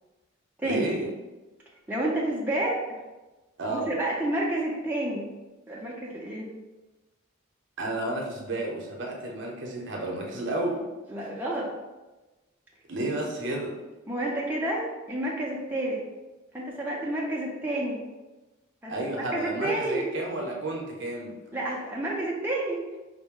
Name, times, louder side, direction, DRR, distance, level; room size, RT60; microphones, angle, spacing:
voice 1, 0.6-1.1 3.6-3.9 7.8-10.8 12.9-13.7 18.9-21.3, right 2 dB, 60° right, -1 dB, 0.7 m, -31 dB
voice 2, 1.9-2.8 3.7-5.3 5.7-6.5 11.1-11.7 14.1-16.0 16.5-18.0 18.8-20.1 21.5-23.0, right 1 dB, 10° right, -5 dB, 0.6 m, -30 dB
5.1 x 2.1 x 3.6 m, 1.1 s
head